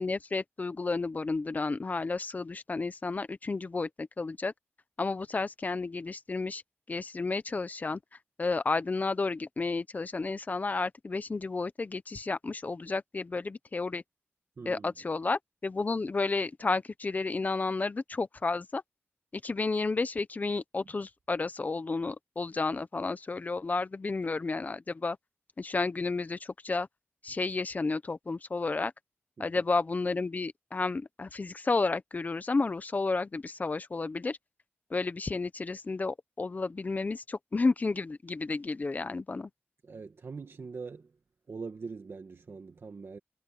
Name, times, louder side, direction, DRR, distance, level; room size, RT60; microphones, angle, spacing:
voice 1, 0.0-4.5 5.0-6.6 6.9-8.0 8.4-14.0 14.7-18.8 19.3-25.2 25.6-26.9 27.2-28.9 29.4-34.4 34.9-39.5, left 3 dB, 35° left, 0.9 m, -31 dB
voice 2, 14.6-14.9 29.4-29.6 39.8-41.1 41.5-43.2, right 4 dB, 60° right, 1.8 m, -42 dB
wide cardioid pair, 125°, 5 cm